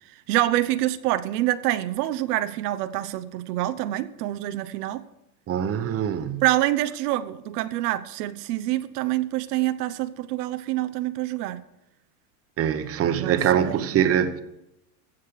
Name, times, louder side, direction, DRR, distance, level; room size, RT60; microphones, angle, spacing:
voice 1, 0.3-5.0 6.4-11.6 13.1-13.9, right 15 dB, 85° right, 0.9 m, -26 dB
voice 2, 5.5-6.4 12.6-14.4, right 9 dB, 30° right, 1.1 m, -23 dB
15.5 x 7.6 x 6.6 m
supercardioid pair, 135°, 46 cm